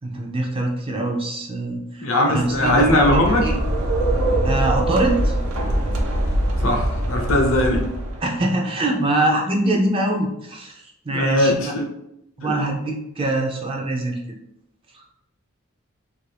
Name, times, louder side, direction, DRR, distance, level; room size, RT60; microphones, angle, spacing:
voice 1, 0.0-3.5 4.4-5.3 8.2-11.7 12.4-14.4 14.9-15.0, right 2 dB, 25° right, 1 dB, 0.4 m, -24 dB
voice 2, 2.0-3.5 6.6-7.8 11.1-11.9 12.4-12.5, left 1 dB, 70° left, 1 dB, 0.7 m, -19 dB
sound 1, 2.4-8.4, right 1 dB, 85° right, 0.5 m, -23 dB
2.6 x 2.5 x 3.3 m, 0.82 s
head